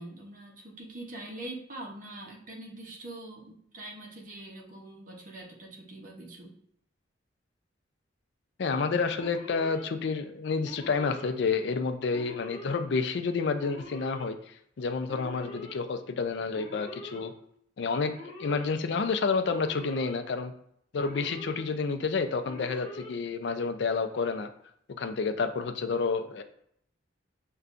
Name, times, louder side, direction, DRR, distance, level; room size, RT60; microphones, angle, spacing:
voice 1, 0.0-6.6, right 1 dB, 45° right, -1 dB, 0.7 m, -43 dB
voice 2, 8.6-14.4 14.8-17.3 17.8-20.5 20.9-24.5 24.9-26.4, left 4 dB, 60° left, 8 dB, 0.4 m, -29 dB
Alarm, 9.2-9.8 10.6-11.3 12.1-12.8 13.6-14.3 15.1-15.7 16.5-17.2 18.0-18.7 19.5-20.2 21.0-21.6 22.4-23.1, left 1 dB, 30° left, 1.1 m, -44 dB
6.7 x 2.2 x 2.5 m, 0.69 s
head